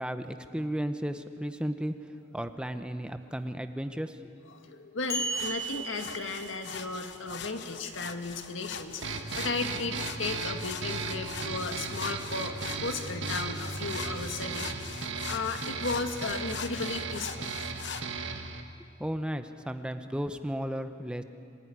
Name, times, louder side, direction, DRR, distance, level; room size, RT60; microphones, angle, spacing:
voice 1, 0.0-1.9 2.3-4.2 19.0-21.2, equal, 5° right, 8 dB, 0.8 m, -34 dB
voice 2, 4.5-17.5, left 3 dB, 85° left, 5 dB, 1.9 m, -35 dB
sound 1, 5.1-6.9, right 3 dB, 15° left, 2.8 m, -35 dB
sound 2, 5.2-18.0, left 6 dB, 65° left, 1.1 m, -42 dB
sound 3, 9.0-18.6, right 4 dB, 85° right, 1.8 m, -36 dB
27.0 x 16.0 x 9.7 m, 2.5 s
head